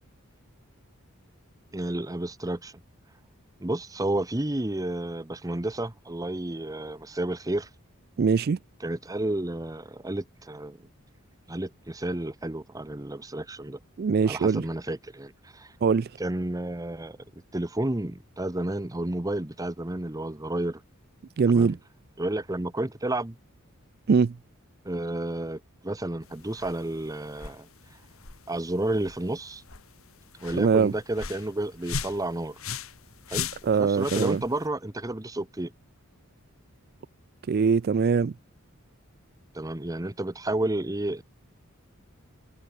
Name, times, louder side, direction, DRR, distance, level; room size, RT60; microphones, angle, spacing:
voice 1, 1.7-2.7 3.6-7.7 8.8-10.8 11.5-13.8 14.3-15.7 16.2-17.2 17.5-20.8 21.5-21.8 22.2-23.4 24.8-27.7 28.5-29.6 30.4-32.6 33.3-33.5 33.8-35.7 39.5-41.2, right 1 dB, 15° right, 0.9 m, -31 dB
voice 2, 8.2-8.6 14.0-14.6 15.8-16.1 21.4-21.8 24.1-24.3 30.6-30.9 33.6-34.4 37.5-38.3, right 5 dB, 45° right, 0.4 m, -22 dB
sound 1, 26.2-34.7, left 6 dB, 70° left, 2.6 m, -39 dB
head